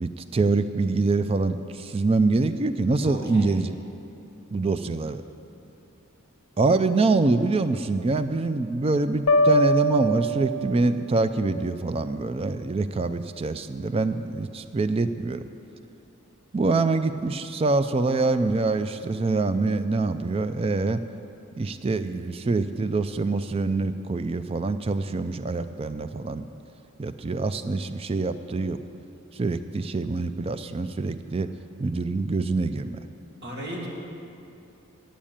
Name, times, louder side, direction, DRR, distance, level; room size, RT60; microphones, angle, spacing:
voice 1, 0.0-3.7 4.5-5.2 6.6-15.4 16.5-21.0 21.6-26.5 27.0-28.8 29.4-31.5 31.8-33.0, right 3 dB, 25° right, 11 dB, 0.3 m, -25 dB
voice 2, 3.0-3.5 33.4-33.9, equal, 50° right, -2 dB, 1.9 m, -35 dB
sound 1, 9.3-11.2, equal, 80° left, 0.8 m, -22 dB
8.6 x 7.4 x 8.9 m, 2.7 s
head